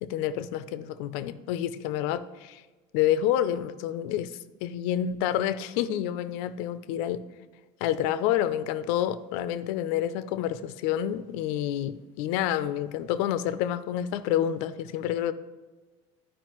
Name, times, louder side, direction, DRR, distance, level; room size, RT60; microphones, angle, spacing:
voice 1, 0.0-2.6 2.9-4.3 4.6-7.2 7.8-15.3, left 11 dB, 70° left, 14 dB, 0.4 m, -28 dB
11.0 x 4.9 x 3.0 m, 1.2 s
cardioid pair, 175°, 14 cm